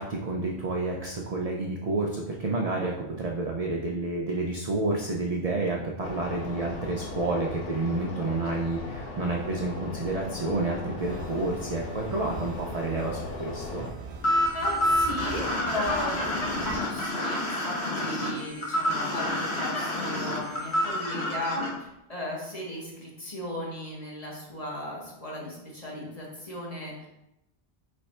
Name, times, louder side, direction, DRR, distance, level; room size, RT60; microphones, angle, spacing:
voice 1, 0.0-13.9, right 2 dB, 60° right, -1 dB, 0.4 m, -30 dB
sound 1, 6.0-13.9, left 3 dB, 85° left, 1.0 m, -38 dB
sound 2, 11.0-16.8, right 4 dB, 80° right, 0.9 m, -42 dB
sound 3, 14.2-21.7, left 1 dB, 65° left, 1.2 m, -28 dB
voice 2, 14.5-27.1, left 1 dB, 35° left, -4 dB, 1.1 m, -36 dB
3.4 x 3.3 x 4.1 m, 0.90 s
omnidirectional pair, 1.2 m